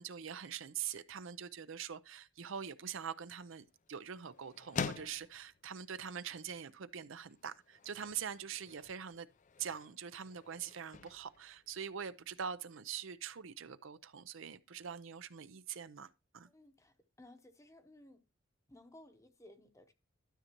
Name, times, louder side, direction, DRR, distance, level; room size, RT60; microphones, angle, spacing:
voice 1, 0.0-9.3 9.6-16.5, right 8 dB, 75° right, 0.6 m, -44 dB
sound 1, 2.7-12.5, left 5 dB, 40° left, 0.4 m, -48 dB
voice 2, 16.5-18.2 18.7-19.9, left 1 dB, 15° left, 0.8 m, -58 dB
12.5 x 6.4 x 3.0 m
head